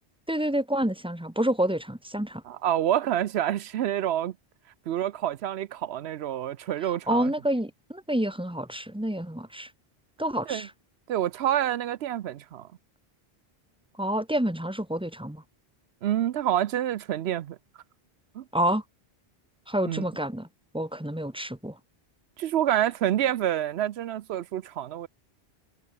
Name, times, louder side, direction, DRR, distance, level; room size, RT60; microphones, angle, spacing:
voice 1, 0.3-2.4 6.8-9.7 10.2-10.7 14.0-15.4 18.5-18.8 19.7-20.5 20.7-21.8, right 1 dB, 5° right, 1.6 m, -28 dB
voice 2, 2.5-4.3 4.9-7.3 10.5-10.7 11.1-12.7 16.0-17.6 18.4-18.5 19.9-20.0 22.4-25.1, right 11 dB, 85° right, 0.9 m, -27 dB
omnidirectional pair, 1.1 m